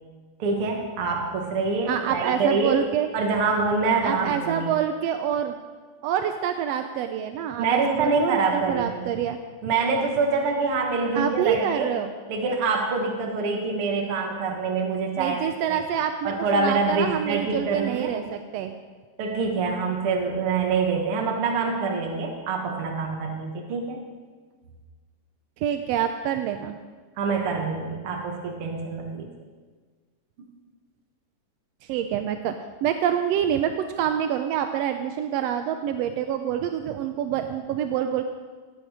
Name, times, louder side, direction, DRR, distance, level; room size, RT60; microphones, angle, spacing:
voice 1, 0.4-2.8 3.1-4.7 7.6-9.1 9.6-11.9 12.3-15.4 15.7-15.8 16.2-18.2 19.2-24.0 27.2-29.3, right 4 dB, 55° right, 1 dB, 2.1 m, -25 dB
voice 2, 1.9-3.1 4.0-5.5 6.0-9.4 11.1-12.1 15.2-18.7 25.6-26.8 31.9-32.6 32.8-38.2, right 9 dB, 75° right, 7 dB, 1.6 m, -26 dB
18.5 x 9.0 x 4.9 m, 1.4 s
omnidirectional pair, 3.4 m